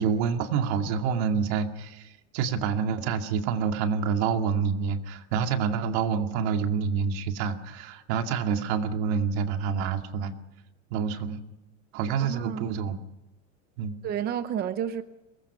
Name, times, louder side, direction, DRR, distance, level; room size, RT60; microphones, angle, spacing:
voice 1, 0.0-10.3 10.9-11.4 11.9-13.0 13.8-14.0, right 6 dB, 65° right, 2.3 m, -27 dB
voice 2, 12.2-12.6 14.0-15.0, right 9 dB, 25° right, 0.7 m, -30 dB
23.5 x 20.0 x 5.7 m
supercardioid pair, 150°, 36 cm